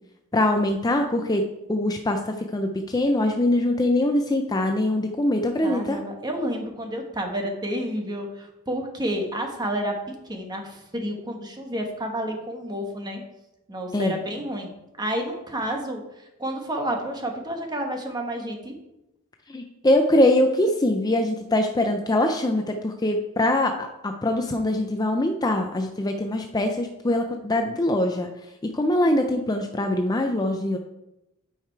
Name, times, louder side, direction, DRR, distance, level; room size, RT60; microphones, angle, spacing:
voice 1, 0.3-1.4 1.7-6.0 13.9-14.1 19.5-28.3 28.7-30.8, left 1 dB, 20° left, 4 dB, 0.5 m, -23 dB
voice 2, 5.6-10.0 10.2-13.2 13.7-14.7 15.0-18.7, equal, 20° right, 3 dB, 1.1 m, -30 dB
8.7 x 5.0 x 4.5 m, 0.93 s
head